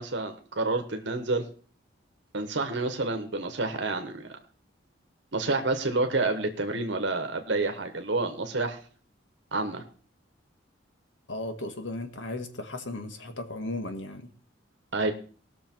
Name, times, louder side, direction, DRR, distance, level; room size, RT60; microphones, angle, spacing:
voice 1, 0.0-1.4 2.3-4.4 5.3-8.8 9.5-9.8 14.9-15.1, right 3 dB, 70° right, 1.2 m, -29 dB
voice 2, 11.3-14.3, left 2 dB, 85° left, 1.6 m, -36 dB
18.0 x 6.4 x 4.5 m
head